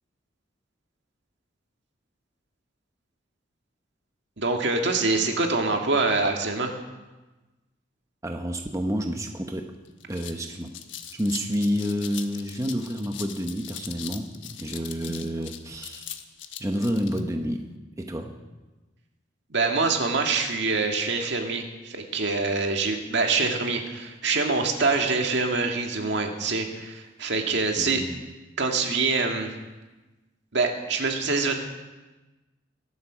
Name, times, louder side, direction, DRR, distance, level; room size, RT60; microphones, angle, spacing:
voice 1, 4.4-6.7 19.5-28.0 28.6-29.5 30.5-31.5, right 3 dB, 65° right, 3 dB, 2.0 m, -25 dB
voice 2, 8.2-9.7 10.1-10.8 11.1-16.2 16.6-17.7 18.0-18.4 27.8-28.2, equal, 15° right, 3 dB, 1.0 m, -29 dB
sound 1, 9.4-9.5 9.8-17.2, left 10 dB, 75° left, 1.2 m, -40 dB
23.0 x 8.4 x 6.2 m, 1.2 s
head